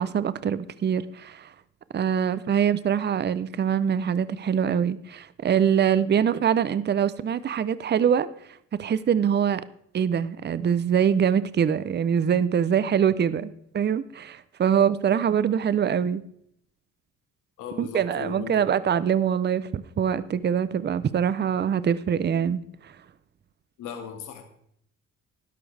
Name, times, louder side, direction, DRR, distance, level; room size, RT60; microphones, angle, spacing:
voice 1, 0.0-1.5 1.9-8.3 8.8-9.6 9.9-16.2 17.8-22.9, right 8 dB, 35° right, 16 dB, 0.6 m, -24 dB
voice 2, 17.6-18.6 23.8-24.4, left 8 dB, 90° left, 5 dB, 1.9 m, -37 dB
12.0 x 11.5 x 3.4 m, 0.72 s
cardioid pair, 90°, 30 cm